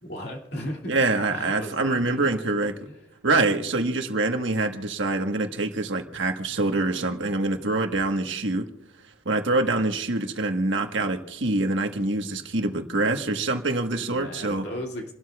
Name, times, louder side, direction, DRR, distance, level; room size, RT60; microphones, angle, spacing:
voice 1, 0.0-2.6 2.9-3.0 14.0-15.1, equal, 55° left, 1 dB, 2.5 m, -36 dB
voice 2, 0.9-2.7 3.2-8.7 9.2-14.6, right 2 dB, 65° right, 5 dB, 1.4 m, -25 dB
28.5 x 12.5 x 2.4 m, 0.87 s
head